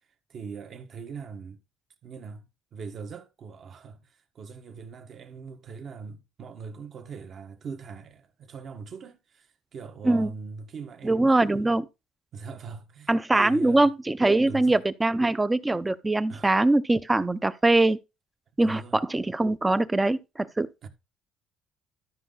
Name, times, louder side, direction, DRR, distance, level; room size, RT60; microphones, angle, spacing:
voice 1, 0.3-1.6 2.0-2.4 2.7-11.8 12.3-13.9 14.4-14.8 16.3-16.5 18.6-19.0 20.8-20.9, right 5 dB, 50° right, 1.5 m, -41 dB
voice 2, 11.0-11.8 13.1-18.0 18.6-20.7, right 2 dB, 15° right, 0.6 m, -22 dB
12.5 x 5.4 x 3.9 m
cardioid pair, 120°, 0 cm